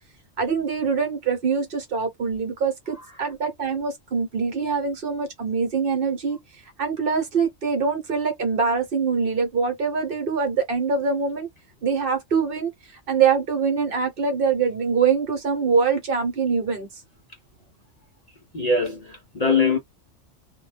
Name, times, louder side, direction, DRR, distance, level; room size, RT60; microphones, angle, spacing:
voice 1, 0.4-6.4 6.8-11.5 11.8-12.7 13.1-16.9, right 5 dB, 55° right, 0.9 m, -24 dB
voice 2, 18.5-19.8, left 4 dB, 45° left, 0.5 m, -22 dB
2.2 x 2.2 x 3.1 m
omnidirectional pair, 1.2 m